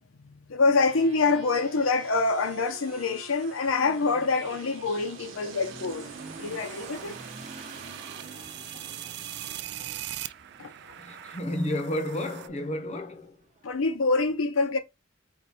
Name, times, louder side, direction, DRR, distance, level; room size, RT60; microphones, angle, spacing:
voice 1, 0.5-6.1 6.4-7.1 8.1-8.4 8.7-8.9 10.6-10.7 13.6-14.8, left 3 dB, 90° left, 0.6 m, -26 dB
sound 1, 0.7-10.8, right 4 dB, 75° right, 1.0 m, -47 dB
Motorcycle / Accelerating revving vroom, 1.5-13.7, right 3 dB, 40° right, 0.8 m, -49 dB
sound 2, 5.5-12.5, right 12 dB, 55° right, 0.3 m, -41 dB
voice 2, 11.0-13.4, left 1 dB, 35° left, 0.6 m, -31 dB
4.5 x 2.2 x 4.1 m
head